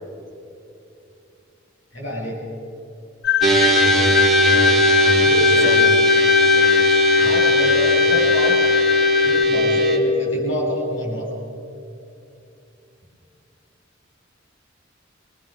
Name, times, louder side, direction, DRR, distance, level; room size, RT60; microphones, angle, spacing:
voice 1, 1.9-2.4 5.2-5.8 7.2-8.7 9.2-11.3, equal, 85° left, -3 dB, 7.5 m, -27 dB
sound 1, 3.2-9.4, left 13 dB, 55° left, 0.5 m, -21 dB
sound 2, 3.4-10.0, equal, ahead, 2.7 m, -17 dB
voice 2, 5.6-5.9 6.5-6.8 9.5-9.8, right 1 dB, 15° right, 3 dB, 2.6 m, -31 dB
26.0 x 19.0 x 6.4 m, 2.8 s
head